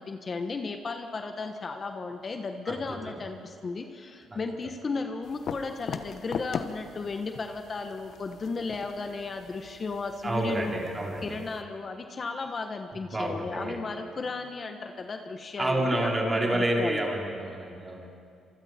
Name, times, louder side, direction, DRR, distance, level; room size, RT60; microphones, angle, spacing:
voice 1, 0.0-10.7 11.2-17.1, left 4 dB, 40° left, 5 dB, 1.4 m, -35 dB
voice 2, 2.7-3.2 4.3-4.4 10.2-11.4 13.1-13.8 15.6-18.1, right 1 dB, 20° right, -1 dB, 4.4 m, -29 dB
sound 1, 5.2-11.6, left 6 dB, 60° left, 1.1 m, -40 dB
26.5 x 24.0 x 4.5 m, 2.4 s
cardioid pair, 90°, 0 cm